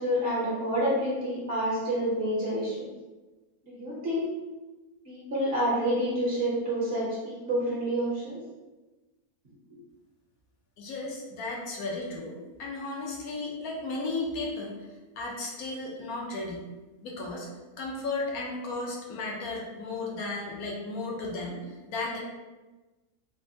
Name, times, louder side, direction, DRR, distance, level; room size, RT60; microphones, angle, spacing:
voice 1, 0.0-2.8 3.6-4.3 5.0-8.4 9.7-9.8, equal, 50° right, -7 dB, 0.9 m, -28 dB
voice 2, 10.8-14.8 15.2-16.6 17.0-17.5 17.8-22.2, left 2 dB, 80° left, -2 dB, 1.1 m, -34 dB
3.3 x 2.0 x 2.6 m, 1.2 s
omnidirectional pair, 1.5 m